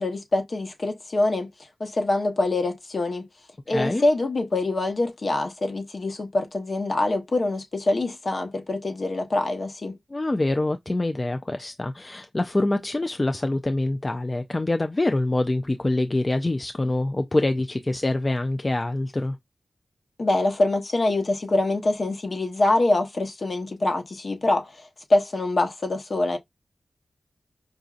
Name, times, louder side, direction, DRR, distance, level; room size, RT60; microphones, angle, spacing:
voice 1, 0.0-1.5 1.8-3.3 3.7-10.0 20.2-26.4, left 2 dB, 55° left, 0.9 m, -24 dB
voice 2, 3.7-4.0 10.1-19.4, left 2 dB, 30° left, 0.3 m, -25 dB
4.9 x 2.6 x 2.4 m
wide cardioid pair, 70°, 0 cm